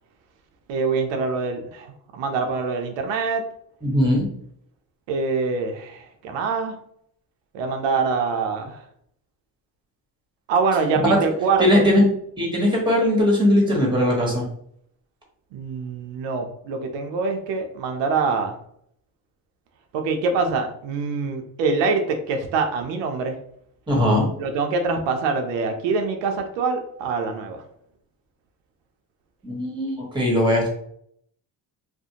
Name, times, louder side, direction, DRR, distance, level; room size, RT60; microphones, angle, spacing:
voice 1, 0.7-3.4 5.1-6.8 7.5-8.8 10.5-11.8 15.5-18.5 19.9-23.4 24.4-27.6, right 4 dB, 90° right, 4 dB, 0.6 m, -24 dB
voice 2, 3.8-4.3 11.1-11.2 11.6-12.1 12.4-14.4 23.9-24.3 29.4-30.7, left 1 dB, 10° right, -2 dB, 1.1 m, -19 dB
2.4 x 2.1 x 2.8 m, 0.68 s
cardioid pair, 80°, 43 cm